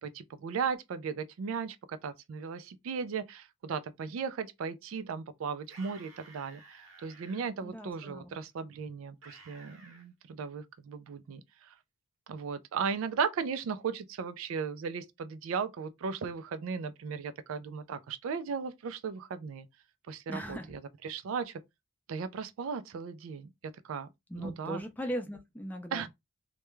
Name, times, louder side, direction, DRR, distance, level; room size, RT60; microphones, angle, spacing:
voice 1, 0.0-11.7 12.3-19.7 20.1-21.6 22.1-23.5 23.8-24.1 24.3-24.8 25.9-26.1, right 6 dB, 90° right, 0.4 m, -36 dB
sound 1, 5.6-7.4 9.2-10.1, right 3 dB, 70° right, 0.9 m, -54 dB
voice 2, 7.6-8.3 20.3-20.7 24.3-26.1, equal, 10° left, 0.4 m, -39 dB
2.2 x 2.2 x 3.0 m
head